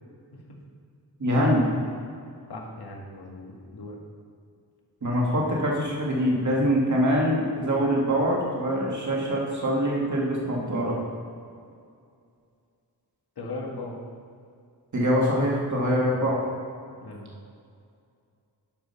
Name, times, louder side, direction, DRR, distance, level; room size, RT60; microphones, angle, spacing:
voice 1, 1.2-1.7 5.0-11.0 14.9-16.4, equal, 45° right, -3 dB, 2.2 m, -24 dB
voice 2, 2.5-4.0 13.4-14.0 17.0-17.3, left 2 dB, 70° left, -1 dB, 1.8 m, -38 dB
11.0 x 5.3 x 5.7 m, 2.4 s
wide cardioid pair, 140°, 40 cm